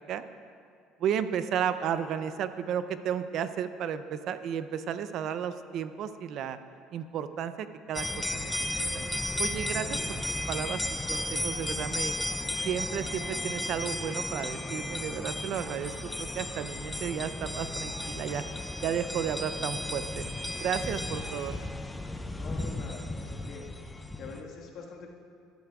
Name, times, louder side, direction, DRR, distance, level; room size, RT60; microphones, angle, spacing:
voice 1, 1.0-6.6 6.9-8.5 9.4-10.2 10.5-10.8 11.1-12.1 12.6-18.4 18.8-20.2 20.6-21.6, right 8 dB, 55° right, 11 dB, 0.5 m, -33 dB
sound 1, 7.9-24.4, left 1 dB, 10° left, 0.5 m, -34 dB
voice 2, 22.4-23.7 24.2-25.1, left 4 dB, 50° left, -1 dB, 1.6 m, -44 dB
13.5 x 12.5 x 2.3 m, 2.4 s
cardioid pair, 125°, 0 cm